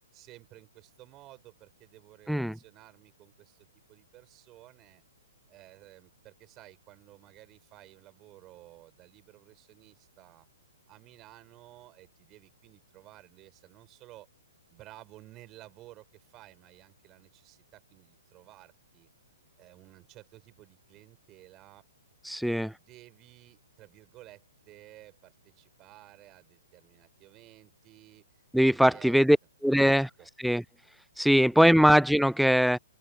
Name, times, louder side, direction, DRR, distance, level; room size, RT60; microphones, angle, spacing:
voice 1, 0.1-5.0 5.5-10.5 10.9-14.3 14.7-19.1 19.6-21.9 22.4-28.4 28.7-29.1 29.7-30.3, right 17 dB, 30° right, 5.5 m, -54 dB
voice 2, 22.3-22.7 28.5-29.4 29.6-30.1 30.4-30.6 31.2-32.8, equal, ahead, 0.4 m, -21 dB
open air
hypercardioid pair, 125°, 0 cm